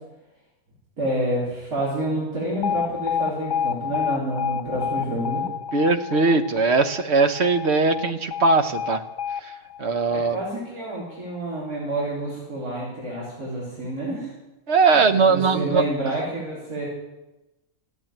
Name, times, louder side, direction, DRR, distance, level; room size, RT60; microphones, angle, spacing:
voice 1, 1.0-5.4 10.1-14.3 14.9-16.9, right 1 dB, 80° right, -7 dB, 4.5 m, -28 dB
Alarm, 2.6-10.7, left 8 dB, 55° left, 0.6 m, -29 dB
voice 2, 5.7-9.0 9.4-9.5 9.8-10.4 14.7-15.8, right 4 dB, 50° right, 8 dB, 1.1 m, -20 dB
15.0 x 8.9 x 8.9 m, 1.0 s
omnidirectional pair, 1.5 m